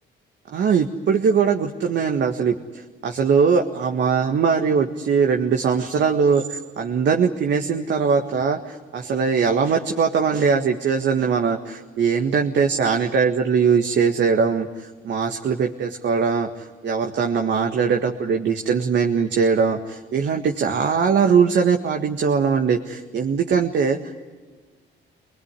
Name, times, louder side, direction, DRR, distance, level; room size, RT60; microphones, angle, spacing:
voice 1, 0.5-24.0, right 6 dB, 65° right, 3 dB, 1.8 m, -21 dB
25.0 x 20.5 x 9.9 m, 1.4 s
cardioid pair, 90°, 20 cm